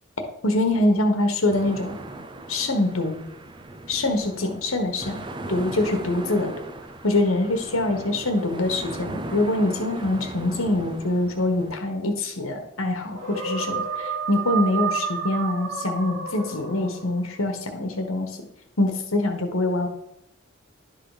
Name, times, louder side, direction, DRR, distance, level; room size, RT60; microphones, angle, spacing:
voice 1, 0.4-2.0 2.5-3.2 3.9-5.2 5.5-6.5 7.0-18.5 18.8-19.9, left 2 dB, 85° left, 4 dB, 1.4 m, -24 dB
sound 1, 1.5-11.8, right 2 dB, 20° right, 0.5 m, -38 dB
sound 2, 13.1-17.2, right 5 dB, 70° right, 2.3 m, -30 dB
11.0 x 3.9 x 4.9 m, 0.80 s
head